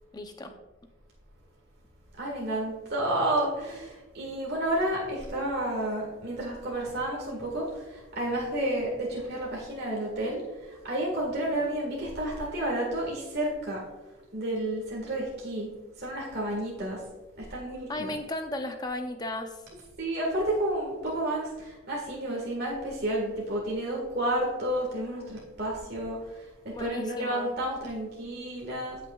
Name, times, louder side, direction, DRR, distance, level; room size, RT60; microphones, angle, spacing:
voice 1, 0.1-0.5 17.9-19.6 26.7-27.5, left 1 dB, 20° left, 5 dB, 0.7 m, -35 dB
voice 2, 2.2-13.8 14.3-15.7 16.0-17.0 17.4-18.2 20.0-26.5 26.8-29.0, right 1 dB, 55° right, -3 dB, 1.7 m, -31 dB
15.0 x 5.9 x 2.4 m, 1.2 s
head